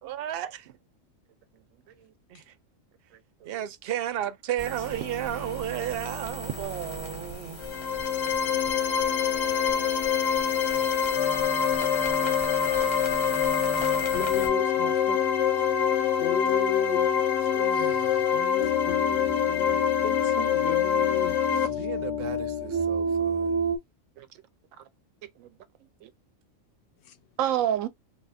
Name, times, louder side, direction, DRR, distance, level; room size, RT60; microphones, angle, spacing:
voice 1, 0.0-0.7 2.3-2.5 3.5-7.7 17.5-18.3 21.7-23.6, right 11 dB, 60° right, 0.7 m, -34 dB
voice 2, 3.1-3.6 9.0-9.1 9.5-9.9 10.2-10.3 24.2-24.3 24.8-24.9 25.4-25.6 26.0-26.1 27.4-27.9, right 10 dB, 90° right, 1.0 m, -31 dB
sound 1, 4.6-14.5, left 1 dB, 25° left, 0.9 m, -38 dB
sound 2, 7.6-21.7, left 8 dB, 90° left, 1.2 m, -26 dB
sound 3, 11.1-23.8, left 4 dB, 15° right, 0.6 m, -30 dB
voice 3, 14.1-15.2 16.2-17.1 18.3-21.8 27.1-27.2, left 7 dB, 65° left, 0.8 m, -35 dB
2.8 x 2.3 x 4.1 m
omnidirectional pair, 1.4 m